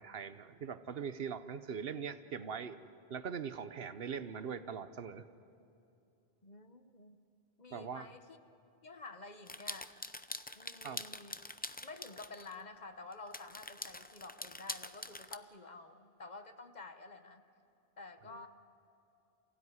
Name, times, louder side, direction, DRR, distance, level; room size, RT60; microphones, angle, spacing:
voice 1, 0.0-2.8 3.1-5.2 7.7-8.1 10.8-11.1 18.3-18.5, right 6 dB, 70° right, 12 dB, 1.0 m, -41 dB
voice 2, 6.4-7.2 7.6-8.4 8.8-9.9 10.6-11.4 11.8-17.4 18.0-18.5, left 3 dB, 45° left, 8 dB, 1.2 m, -50 dB
sound 1, 9.5-12.5 13.1-15.4, left 2 dB, 15° left, 0.4 m, -44 dB
28.0 x 16.0 x 9.6 m, 2.7 s
omnidirectional pair, 1.0 m